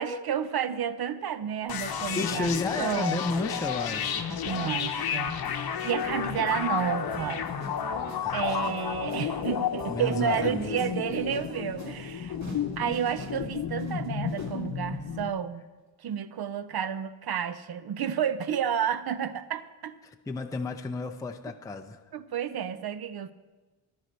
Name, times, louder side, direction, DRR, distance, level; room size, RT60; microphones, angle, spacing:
voice 1, 0.0-2.5 2.8-3.3 4.4-7.5 8.3-12.4 12.8-15.6 16.0-19.9 22.1-23.3, right 8 dB, 50° right, 13 dB, 0.7 m, -31 dB
sound 1, 1.7-15.3, left 8 dB, 50° left, 0.9 m, -32 dB
sound 2, 1.9-14.6, right 1 dB, 35° right, 2.3 m, -48 dB
voice 2, 2.2-4.3 8.2-8.8 9.9-10.8 20.0-22.0, left 3 dB, 10° left, 5 dB, 0.4 m, -32 dB
13.0 x 11.5 x 4.4 m, 1.2 s
wide cardioid pair, 125°, 48 cm